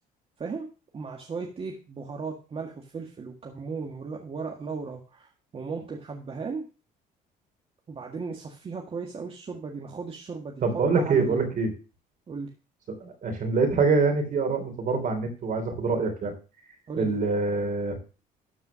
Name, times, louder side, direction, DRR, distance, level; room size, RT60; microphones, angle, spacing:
voice 1, 0.9-6.7 7.9-10.7 10.9-11.6 12.3-12.5 16.9-17.1, right 4 dB, 35° right, 1 dB, 1.8 m, -36 dB
voice 2, 10.6-11.7 13.0-16.3 17.0-18.0, right 4 dB, 50° right, 6 dB, 3.5 m, -25 dB
12.5 x 4.9 x 6.2 m, 0.34 s
cardioid pair, 110°, 17 cm